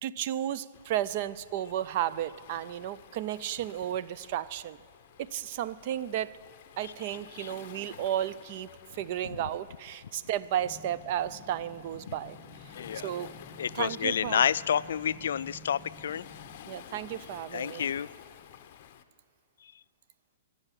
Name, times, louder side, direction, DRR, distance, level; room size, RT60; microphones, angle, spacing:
voice 1, 0.0-4.8 5.2-6.4 6.8-12.7 13.0-13.3 13.7-14.4 16.7-17.8, right 11 dB, 45° right, 16 dB, 0.4 m, -33 dB
Waves surf, 0.7-19.0, left 10 dB, 45° left, 0.8 m, -52 dB
sound 1, 10.6-16.6, left 3 dB, 20° left, 1.9 m, -51 dB
voice 2, 12.8-13.1 13.6-16.3 17.5-18.1, left 8 dB, 75° left, 17 dB, 0.3 m, -29 dB
18.5 x 7.1 x 9.9 m, 2.3 s
hypercardioid pair, 160°, 0 cm